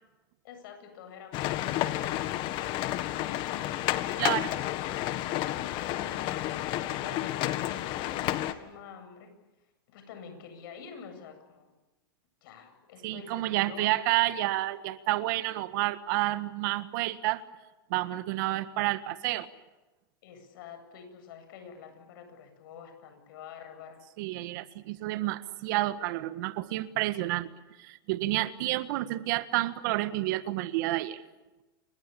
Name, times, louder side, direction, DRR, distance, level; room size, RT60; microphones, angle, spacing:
voice 1, 0.4-3.7 4.8-4.9 5.2-9.3 9.9-11.7 12.4-13.9 20.2-24.0, left 6 dB, 60° left, 8 dB, 8.0 m, -47 dB
sound 1, 1.3-8.5, left 14 dB, 40° left, 1.8 m, -31 dB
voice 2, 4.2-4.5 13.0-17.4 17.9-19.5 24.2-27.5 27.8-31.2, right 17 dB, 55° right, 13 dB, 1.6 m, -29 dB
29.5 x 25.0 x 7.0 m, 1.1 s
supercardioid pair, 140°, 13 cm